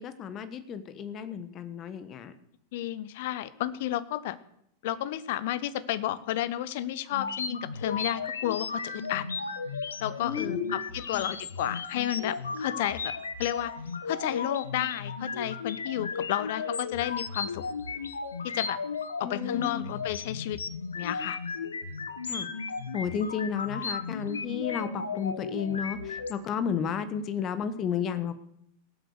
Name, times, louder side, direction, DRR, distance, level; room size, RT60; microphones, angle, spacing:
voice 1, 0.0-2.3 10.2-10.8 11.1-11.3 19.2-19.8 22.3-22.5 22.9-28.4, left 7 dB, 30° left, 13 dB, 1.3 m, -33 dB
voice 2, 2.7-4.4 4.8-9.2 10.0-13.1 13.4-13.7 14.0-17.6 18.4-18.8 19.2-20.6 20.9-21.4, left 13 dB, 50° left, 17 dB, 0.8 m, -32 dB
sound 1, 7.1-26.3, left 5 dB, 70° left, 1.0 m, -35 dB
17.5 x 7.9 x 6.6 m, 0.73 s
figure-of-eight pair, 90°, 0 cm